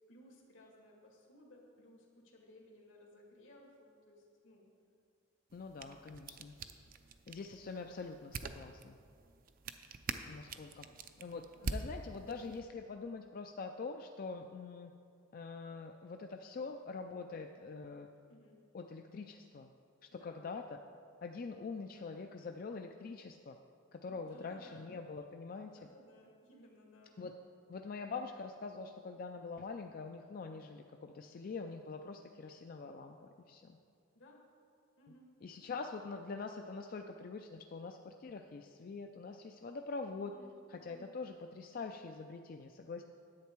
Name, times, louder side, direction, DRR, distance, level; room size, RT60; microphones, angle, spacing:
voice 1, 0.1-4.7 10.8-10.9 11.5-11.8 18.3-18.6 20.1-20.6 24.1-24.9 25.7-27.2 34.1-34.5 35.0-35.3 40.1-40.5 40.9-41.2, left 1 dB, 80° left, 0 dB, 2.0 m, -60 dB
voice 2, 5.5-6.6 7.3-9.0 10.3-10.9 11.2-14.9 15.3-18.1 18.7-19.7 20.1-20.8 21.2-23.6 23.9-25.7 27.2-27.3 27.7-33.8 35.4-40.3 40.7-43.0, left 4 dB, 45° left, 5 dB, 0.4 m, -44 dB
sound 1, 5.5-12.6, right 4 dB, 45° right, 0.5 m, -46 dB
10.5 x 8.2 x 4.5 m, 2.3 s
head